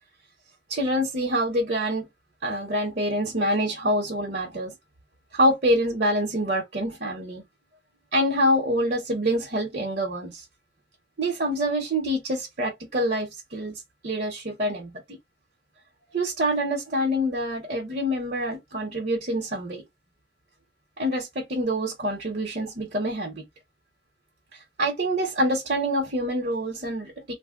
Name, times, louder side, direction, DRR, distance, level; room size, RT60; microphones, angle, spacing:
voice 1, 0.7-2.1 2.4-4.7 5.3-7.4 8.1-10.4 11.2-15.2 16.1-19.8 21.0-23.4 24.8-27.3, equal, 50° right, 1.0 m, -26 dB
2.7 x 2.1 x 3.7 m
head